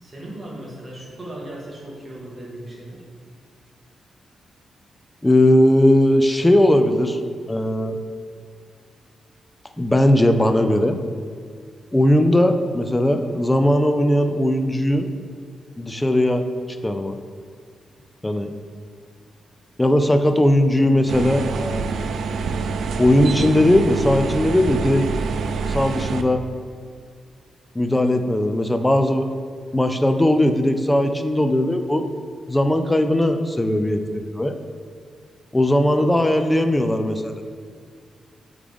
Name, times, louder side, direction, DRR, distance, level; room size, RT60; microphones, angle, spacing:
voice 1, 0.0-3.0, right 1 dB, 20° right, -5 dB, 1.4 m, -37 dB
voice 2, 5.2-7.2 7.5-8.0 9.8-11.0 11.9-15.1 15.8-16.4 16.8-17.2 18.2-18.5 19.8-21.8 23.0-25.1 25.7-26.4 27.8-29.3 29.7-32.1 32.5-34.6 35.5-37.4, left 1 dB, 10° left, 7 dB, 0.3 m, -18 dB
sound 1, 21.1-26.2, right 4 dB, 70° right, 0.4 m, -26 dB
8.3 x 3.7 x 3.5 m, 2.2 s
wide cardioid pair, 160°, 0 cm